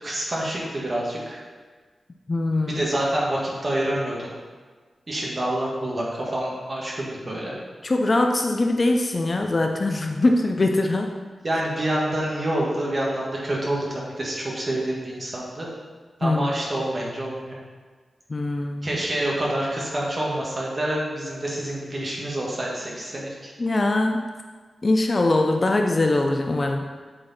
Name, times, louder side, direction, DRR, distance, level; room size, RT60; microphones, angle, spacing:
voice 1, 0.0-1.4 2.6-4.3 5.1-7.5 11.4-15.7 16.2-17.5 18.8-23.5, right 1 dB, 35° right, -4 dB, 1.6 m, -27 dB
voice 2, 2.3-2.8 7.8-11.1 16.2-16.5 18.3-19.0 23.6-24.2 24.8-26.9, left 2 dB, 35° left, 3 dB, 0.5 m, -22 dB
7.7 x 4.5 x 4.1 m, 1.5 s
wide cardioid pair, 120°, 0 cm